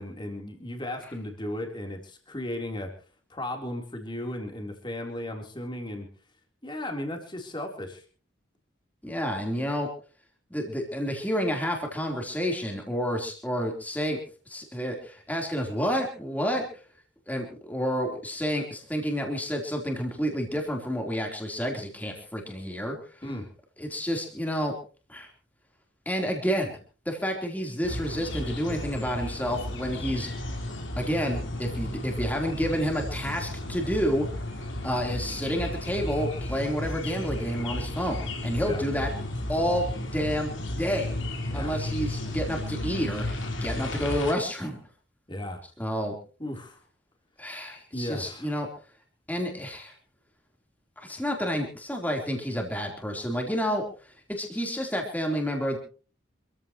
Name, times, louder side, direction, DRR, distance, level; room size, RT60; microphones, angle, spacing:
voice 1, 0.0-2.9 3.3-6.1 6.6-8.0 23.2-23.5 38.6-38.8 41.5-41.8 45.3-45.6 46.4-46.8 47.9-48.6, left 1 dB, 25° left, 3 dB, 3.8 m, -35 dB
voice 2, 9.0-9.9 10.5-14.2 14.5-16.7 17.3-23.0 23.8-24.7 25.1-25.3 26.1-26.7 27.1-30.3 31.0-34.3 34.8-39.1 39.5-39.8 40.1-40.5 40.8-41.1 41.5-44.8 45.8-46.2 47.4-48.7 49.3-49.9 51.0-53.8 54.3-55.8, equal, 10° left, 1 dB, 3.8 m, -29 dB
sound 1, 27.8-44.3, left 1 dB, 75° left, 4.8 m, -33 dB
27.0 x 15.0 x 3.1 m, 0.38 s
head